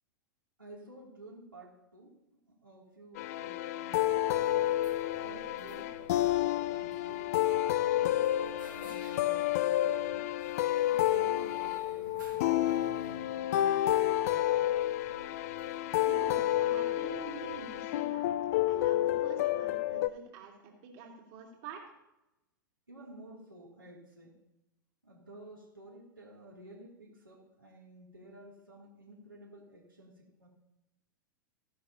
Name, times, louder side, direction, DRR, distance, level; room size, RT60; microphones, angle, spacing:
voice 1, 0.6-4.7 5.2-8.2 8.7-10.3 10.8-14.5 15.1-15.2 22.9-24.4 25.0-30.5, right 1 dB, 85° right, -3 dB, 2.6 m, -52 dB
sound 1, 3.2-20.1, left 13 dB, 45° left, 0.5 m, -30 dB
sound 2, 4.3-17.8, right 4 dB, 65° right, 2.2 m, -56 dB
voice 2, 15.9-21.8, right 6 dB, 45° right, 0 dB, 2.5 m, -47 dB
14.5 x 12.0 x 2.8 m, 0.91 s
figure-of-eight pair, 100°, 11 cm